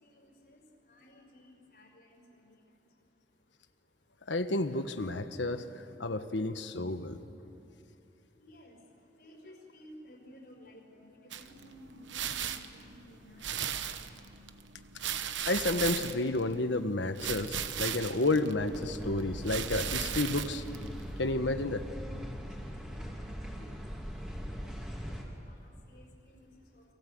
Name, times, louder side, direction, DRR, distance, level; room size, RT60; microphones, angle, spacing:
voice 1, 0.0-0.6 0.9-2.5 8.4-8.7 9.2-14.2 22.7-23.2 23.5-23.8 24.3-24.7 25.1-26.5 26.7-26.8, equal, 60° left, -1 dB, 4.9 m, -55 dB
voice 2, 4.3-5.6 6.0-7.2 15.4-20.6 21.2-21.8, left 2 dB, 85° left, 9 dB, 1.3 m, -31 dB
sound 1, 11.3-21.3, right 9 dB, 90° right, 1.1 m, -38 dB
sound 2, 18.6-25.2, equal, 5° right, 3.0 m, -41 dB
30.0 x 23.5 x 7.9 m, 2.8 s
head